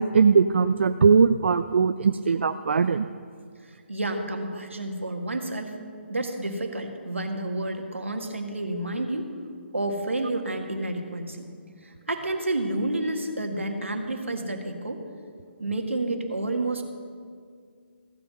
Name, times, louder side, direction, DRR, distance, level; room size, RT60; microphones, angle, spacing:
voice 1, 0.0-3.1, right 5 dB, 70° right, 10 dB, 0.4 m, -20 dB
voice 2, 3.9-5.8 6.1-9.3 9.7-11.5 11.8-15.0 15.6-16.8, right 2 dB, 90° right, 4 dB, 1.6 m, -30 dB
15.0 x 5.3 x 7.5 m, 2.1 s
figure-of-eight pair, 140°, 7 cm